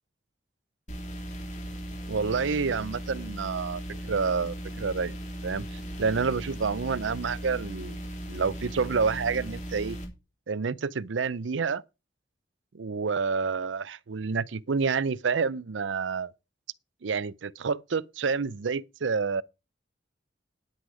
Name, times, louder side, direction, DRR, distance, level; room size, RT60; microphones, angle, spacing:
sound 1, 0.9-10.0, right 1 dB, 40° left, 3.3 m, -37 dB
voice 1, 2.1-5.1 5.4-8.0 8.3-10.0 10.5-11.8 12.7-16.3 17.0-19.4, right 5 dB, 90° right, 0.5 m, -29 dB
9.9 x 9.7 x 4.8 m
head